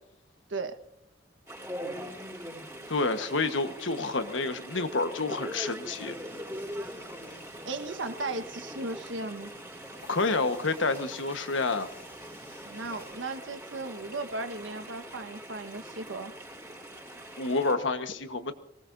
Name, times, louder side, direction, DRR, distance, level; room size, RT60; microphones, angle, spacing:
Chatter / Stream, 1.5-17.7, equal, 15° right, 5.2 m, -42 dB
voice 1, 2.9-6.2 10.1-11.9 17.4-18.5, left 3 dB, 75° left, 8 dB, 1.4 m, -29 dB
sound 1, 5.9-13.8, equal, 10° left, 3.5 m, -54 dB
voice 2, 7.6-9.5 12.6-16.3, right 3 dB, 75° right, 8 dB, 1.4 m, -36 dB
24.5 x 19.0 x 2.7 m, 0.78 s
head